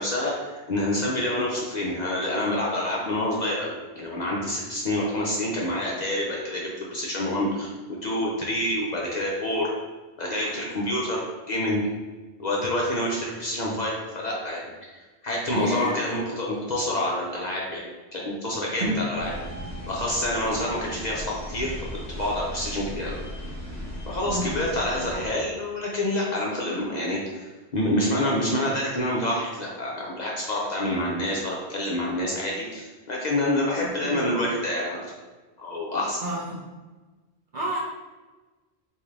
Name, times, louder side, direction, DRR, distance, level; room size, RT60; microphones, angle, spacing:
voice 1, 0.0-7.7 8.0-9.7 10.2-11.2 11.5-11.8 12.4-15.0 15.2-19.3 19.9-21.7 22.1-23.2 24.1-35.0 35.6-36.2, left 1 dB, 50° left, -4 dB, 0.6 m, -27 dB
voice 2, 15.5-16.1 18.8-19.0 24.3-24.6 33.8-34.2 36.2-36.6 37.5-37.8, right 2 dB, 50° right, -4 dB, 0.6 m, -29 dB
sound 1, 19.2-25.3, equal, 15° left, 0.9 m, -37 dB
3.6 x 2.6 x 3.2 m, 1.2 s
omnidirectional pair, 1.1 m